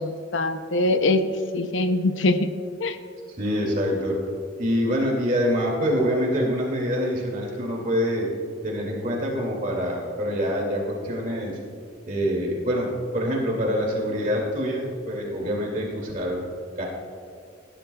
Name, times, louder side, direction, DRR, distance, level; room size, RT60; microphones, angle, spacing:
voice 1, 0.0-2.5 2.8-3.0, left 2 dB, 70° left, 9 dB, 0.6 m, -23 dB
voice 2, 3.4-4.1 4.6-8.3 8.6-11.6 12.0-16.4 16.8-16.9, equal, 40° right, -2 dB, 2.3 m, -25 dB
17.5 x 11.0 x 2.3 m, 2.2 s
head